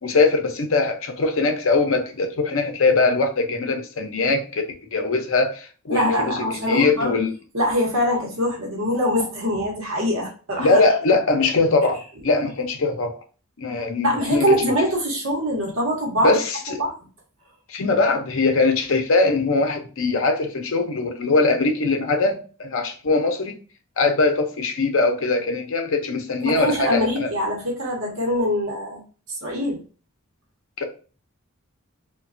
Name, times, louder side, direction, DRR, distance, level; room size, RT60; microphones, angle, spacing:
voice 1, 0.0-4.6 4.9-6.4 6.7-7.3 10.6-13.2 13.6-14.5 16.2-16.8 17.7-23.5 24.0-27.3 30.8-30.9, left 3 dB, 60° left, 5 dB, 0.6 m, -21 dB
voice 2, 5.9-7.2 7.5-10.8 14.0-16.4 16.8-16.9 26.4-29.0 29.3-29.8, equal, 65° right, -1 dB, 0.9 m, -23 dB
3.1 x 2.2 x 2.4 m, 0.38 s
head